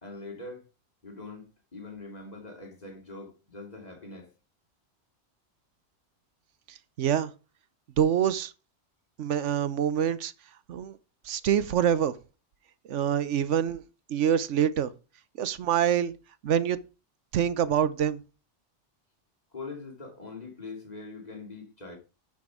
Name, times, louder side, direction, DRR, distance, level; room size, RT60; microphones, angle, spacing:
voice 1, 0.0-0.7 1.0-4.3 19.5-22.0, left 3 dB, 35° left, 2.5 m, -42 dB
voice 2, 7.0-7.3 8.0-8.5 9.2-10.3 10.7-11.0 11.2-12.2 12.9-13.8 14.1-14.9 15.4-16.1 16.4-16.8 17.3-18.2, right 9 dB, 85° right, 1.1 m, -25 dB
10.5 x 6.1 x 4.8 m
omnidirectional pair, 1.2 m